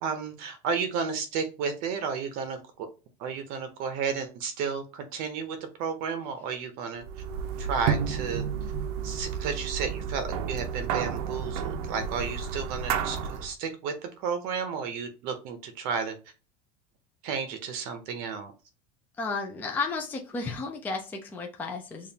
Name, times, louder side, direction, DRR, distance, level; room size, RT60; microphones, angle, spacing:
voice 1, 0.0-2.9 3.2-7.0 7.6-8.4 9.0-13.9 14.2-16.1 17.2-18.5, right 6 dB, 50° right, 8 dB, 0.7 m, -32 dB
sound 1, 7.0-13.5, right 7 dB, 85° right, 0.7 m, -31 dB
voice 2, 19.2-22.1, left 4 dB, 10° left, 1 dB, 0.4 m, -33 dB
7.0 x 2.4 x 2.8 m, 0.33 s
cardioid pair, 170°, 19 cm